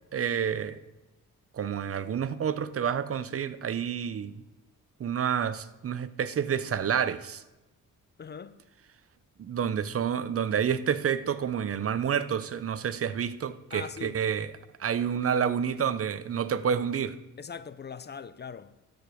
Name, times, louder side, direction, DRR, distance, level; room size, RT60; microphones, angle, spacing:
voice 1, 0.1-0.8 1.5-4.4 5.0-7.4 9.4-14.5 14.8-17.2, right 8 dB, 45° right, 0.7 m, -29 dB
voice 2, 8.2-8.6 13.7-14.2 17.4-18.7, left 6 dB, 30° left, 0.5 m, -41 dB
12.5 x 5.2 x 6.3 m
cardioid pair, 95°, 32 cm